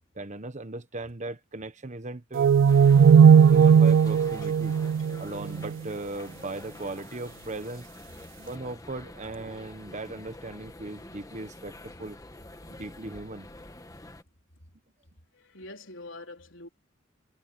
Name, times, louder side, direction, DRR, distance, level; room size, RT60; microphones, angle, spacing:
voice 1, 0.1-2.5 3.5-4.8 5.2-7.9 8.4-12.2 12.7-13.5, right 2 dB, 40° right, 1.2 m, -38 dB
sound 1, 2.4-5.8, right 7 dB, 70° right, 0.3 m, -17 dB
sound 2, 2.7-14.2, left 1 dB, 20° left, 1.4 m, -47 dB
voice 2, 15.3-16.7, left 2 dB, 80° left, 4.2 m, -45 dB
head